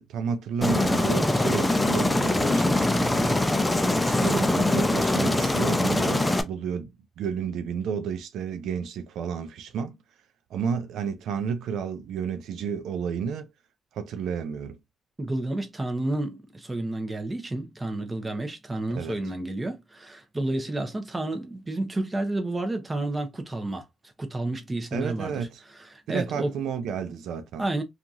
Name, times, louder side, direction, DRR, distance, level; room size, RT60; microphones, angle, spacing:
voice 1, 0.0-3.4 4.1-6.9 7.2-9.9 10.5-13.5 13.9-14.8 18.9-19.2 24.9-25.6 26.1-27.6, right 7 dB, 80° right, 0.4 m, -31 dB
Aircraft, 0.6-6.4, left 2 dB, 15° left, 0.5 m, -23 dB
voice 2, 15.2-23.8 24.2-25.3 25.9-26.5 27.6-27.8, right 2 dB, 20° right, 0.8 m, -30 dB
2.8 x 2.4 x 2.6 m
cardioid pair, 90°, 0 cm